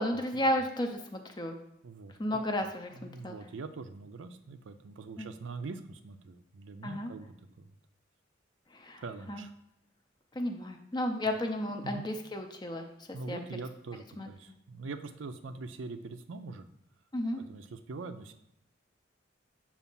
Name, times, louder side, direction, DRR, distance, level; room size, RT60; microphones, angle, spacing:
voice 1, 0.0-1.6 2.2-3.4 5.2-5.3 6.8-7.1 8.7-9.0 9.3-9.4 10.3-13.4 14.2-14.3 17.1-17.4, left 1 dB, 20° left, 4 dB, 0.4 m, -33 dB
voice 2, 1.8-2.4 2.9-7.7 9.0-9.5 11.8-12.0 13.1-16.7 17.4-18.3, right 3 dB, 75° right, 9 dB, 0.5 m, -43 dB
7.0 x 2.5 x 5.3 m, 0.81 s
head